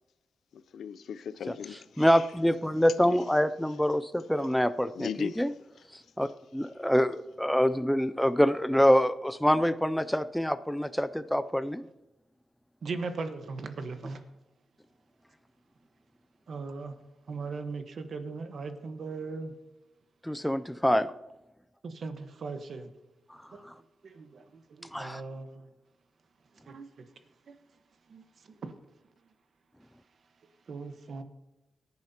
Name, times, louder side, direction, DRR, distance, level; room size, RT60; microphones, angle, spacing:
voice 1, 0.5-2.2 3.0-3.2 5.0-5.4, left 7 dB, 80° left, 0.5 m, -38 dB
voice 2, 2.0-5.5 6.2-11.9 20.2-21.1 23.7-23.8 24.9-25.2, equal, ahead, 0.4 m, -26 dB
voice 3, 12.8-14.2 16.5-17.0 17.3-19.5 21.8-22.9 23.5-23.7 24.0-25.7 26.6-27.1 27.5-27.6 28.1-28.7 30.7-31.2, right 4 dB, 55° right, 1.2 m, -38 dB
23.5 x 10.5 x 2.9 m
wide cardioid pair, 135°, 0 cm